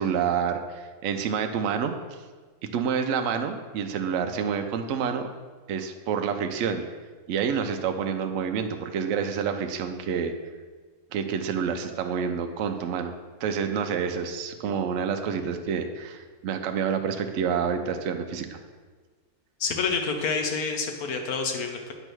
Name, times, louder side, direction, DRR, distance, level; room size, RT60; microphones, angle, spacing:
voice 1, 0.0-2.0 2.7-5.3 5.7-6.8 7.3-10.3 11.1-13.1 13.4-18.6, right 7 dB, 65° right, 6 dB, 0.9 m, -28 dB
voice 2, 19.6-21.9, left 5 dB, 80° left, 4 dB, 1.4 m, -28 dB
8.9 x 3.3 x 6.1 m, 1.4 s
omnidirectional pair, 1.6 m